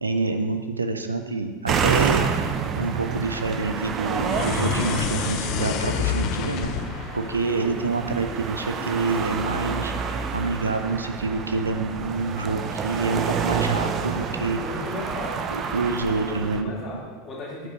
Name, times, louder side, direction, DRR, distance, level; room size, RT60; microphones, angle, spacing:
voice 1, 0.0-2.2 2.7-6.7 7.1-14.6 15.5-16.7, right 3 dB, 80° right, 7 dB, 0.5 m, -27 dB
sound 1, 1.7-16.6, right 6 dB, 35° right, 0.6 m, -28 dB
sound 2, 4.2-8.6, left 9 dB, 45° left, 0.4 m, -29 dB
voice 2, 14.5-15.6 16.1-17.7, left 1 dB, 25° left, -5 dB, 2.6 m, -36 dB
9.1 x 5.2 x 4.4 m, 1.4 s
figure-of-eight pair, 80°, 0 cm